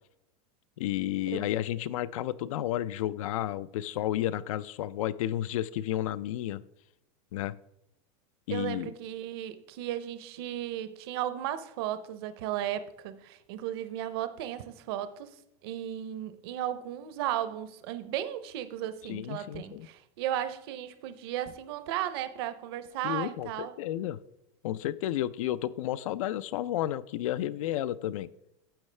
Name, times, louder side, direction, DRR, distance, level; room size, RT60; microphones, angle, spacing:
voice 1, 0.8-6.6 7.3-7.5 8.5-8.9 19.1-19.9 23.0-24.2 24.6-28.3, left 13 dB, 90° left, 17 dB, 0.4 m, -32 dB
voice 2, 8.5-15.3 15.6-23.8, right 11 dB, 50° right, 12 dB, 0.6 m, -35 dB
10.0 x 7.2 x 3.2 m, 0.82 s
supercardioid pair, 180°, 17 cm